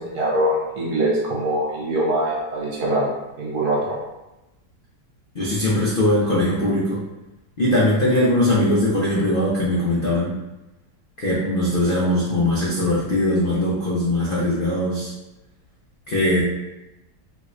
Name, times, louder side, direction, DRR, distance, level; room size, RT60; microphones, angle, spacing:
voice 1, 0.0-3.1 3.4-4.0, right 1 dB, 65° right, -5 dB, 1.4 m, -23 dB
voice 2, 5.3-7.0 7.6-10.3 11.2-15.1 16.1-16.4, left 1 dB, 85° left, -7 dB, 0.4 m, -20 dB
3.2 x 3.1 x 2.5 m, 0.98 s
omnidirectional pair, 1.9 m